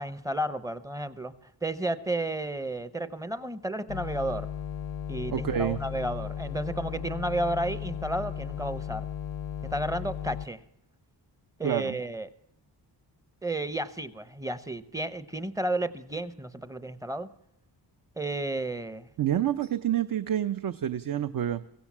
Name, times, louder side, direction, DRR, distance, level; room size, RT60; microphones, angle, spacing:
voice 1, 0.0-1.3 1.6-4.5 5.1-9.0 9.7-10.6 11.6-12.3 13.4-17.3 18.2-19.1, right 1 dB, 10° right, 15 dB, 0.7 m, -32 dB
sound 1, 3.9-10.5, left 9 dB, 85° left, 0.7 m, -36 dB
voice 2, 5.3-5.8 11.6-12.0 19.2-21.6, right 11 dB, 50° right, 11 dB, 0.7 m, -28 dB
23.5 x 16.0 x 7.3 m, 0.78 s
wide cardioid pair, 180°, 43 cm